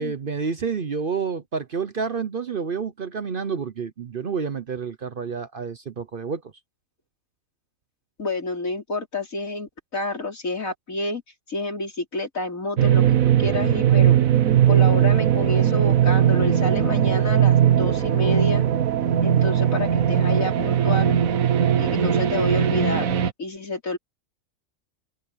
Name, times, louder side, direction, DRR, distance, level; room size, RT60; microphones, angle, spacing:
voice 1, 0.0-6.4, right 5 dB, 45° right, 0.9 m, -29 dB
voice 2, 8.2-11.2 11.5-14.2 14.7-18.6 19.2-21.2 21.8-24.0, left 2 dB, 75° left, 4.7 m, -29 dB
sound 1, 12.8-23.3, right 10 dB, 85° right, 1.4 m, -19 dB
open air
omnidirectional pair, 1.4 m